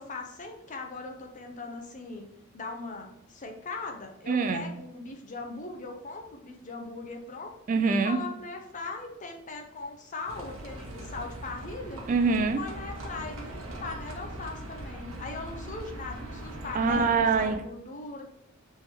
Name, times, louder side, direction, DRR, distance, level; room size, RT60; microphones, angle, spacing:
voice 1, 0.0-2.3 2.5-7.5 8.0-12.0 12.6-18.2, left 3 dB, 40° left, 3 dB, 0.6 m, -39 dB
voice 2, 4.3-4.7 7.7-8.2 12.1-12.6 16.7-17.6, right 4 dB, 40° right, 7 dB, 0.4 m, -24 dB
Livestock farm animals working animals, 10.3-17.6, right 1 dB, 90° right, 0.9 m, -40 dB
3.4 x 3.0 x 4.5 m, 0.80 s
head